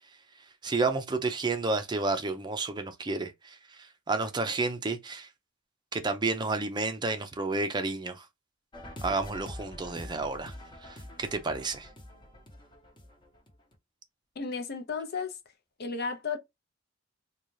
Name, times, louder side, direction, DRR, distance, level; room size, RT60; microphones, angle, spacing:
voice 1, 0.6-5.3 5.9-8.3 9.0-10.5 10.8-11.9, right 3 dB, 20° right, 0.5 m, -31 dB
sound 1, 8.7-13.7, left 1 dB, 25° left, 0.9 m, -45 dB
voice 2, 14.4-15.4 15.8-16.4, left 5 dB, 50° left, 0.6 m, -33 dB
3.8 x 2.3 x 3.1 m
head